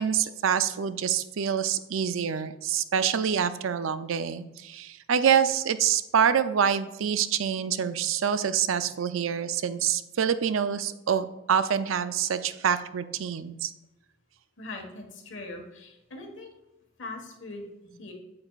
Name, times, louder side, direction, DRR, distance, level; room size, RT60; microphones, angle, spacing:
voice 1, 0.0-13.7, right 8 dB, 70° right, 12 dB, 0.4 m, -26 dB
voice 2, 14.6-16.5 17.0-18.1, left 2 dB, 60° left, 3 dB, 1.5 m, -41 dB
8.6 x 7.9 x 2.4 m, 0.95 s
head